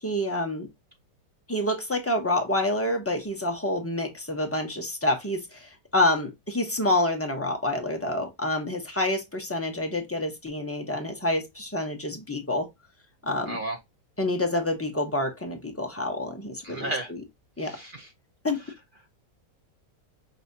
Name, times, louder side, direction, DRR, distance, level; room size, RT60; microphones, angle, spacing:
voice 1, 0.0-0.7 1.5-12.7 13.2-13.6 14.2-17.2 17.6-17.8 18.4-18.6, left 1 dB, 15° left, 0.4 m, -28 dB
voice 2, 13.5-13.8 16.6-17.1 17.6-18.1, right 2 dB, 65° right, 0.5 m, -33 dB
5.4 x 2.8 x 2.6 m
omnidirectional pair, 1.7 m